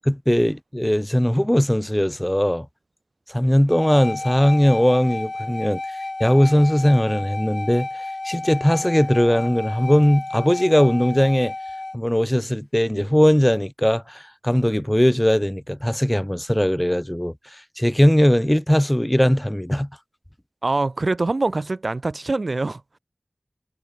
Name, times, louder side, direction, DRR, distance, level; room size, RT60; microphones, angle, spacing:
voice 1, 0.1-2.7 3.3-7.9 8.2-11.5 11.9-17.3 17.8-19.9, equal, 10° left, 4.0 m, -19 dB
sound 1, 3.7-12.0, left 2 dB, 70° left, 4.9 m, -31 dB
voice 2, 20.6-23.0, right 2 dB, 85° right, 6.8 m, -24 dB
wide cardioid pair, 45°, 0 cm